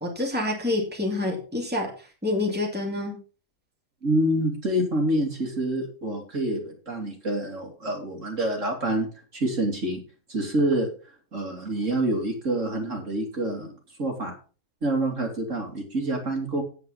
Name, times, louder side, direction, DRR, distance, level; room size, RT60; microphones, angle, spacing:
voice 1, 0.0-1.9 2.2-3.2, left 2 dB, 5° right, 0 dB, 2.6 m, -27 dB
voice 2, 4.0-9.1 9.3-10.0 10.3-10.9 11.3-13.7 14.0-14.3 14.8-16.6, right 1 dB, 50° right, 1 dB, 3.0 m, -27 dB
9.0 x 8.7 x 5.4 m, 0.37 s
omnidirectional pair, 1.7 m